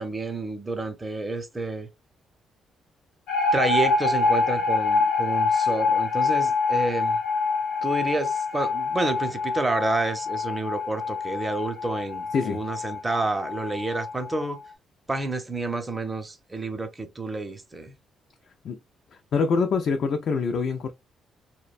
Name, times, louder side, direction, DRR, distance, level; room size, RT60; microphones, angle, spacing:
voice 1, 0.0-1.9 3.5-7.2 7.8-14.6 15.1-18.0, right 2 dB, 20° right, 0.6 m, -29 dB
sound 1, 3.3-14.4, left 4 dB, 80° left, 0.8 m, -26 dB
voice 2, 19.3-20.9, left 5 dB, 60° left, 0.4 m, -24 dB
2.5 x 2.1 x 2.4 m
cardioid pair, 90°, 0 cm